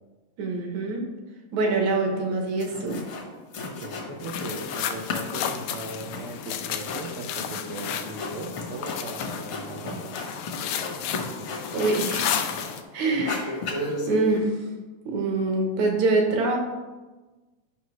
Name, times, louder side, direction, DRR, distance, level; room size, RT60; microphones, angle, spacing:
voice 1, 0.4-1.1 1.5-3.0 11.7-12.4 12.9-13.6 14.1-14.6 15.1-16.6, right 3 dB, 65° right, 1 dB, 2.3 m, -25 dB
sound 1, 2.3-2.4 2.6-3.3 3.5-4.8 5.1-12.8 13.1-14.4, left 3 dB, 60° left, 1.5 m, -34 dB
voice 2, 3.6-10.2, right 2 dB, 85° right, 0 dB, 1.2 m, -38 dB
sound 2, 4.2-12.8, left 9 dB, 80° left, 1.7 m, -32 dB
11.0 x 5.7 x 3.1 m, 1.2 s
omnidirectional pair, 3.7 m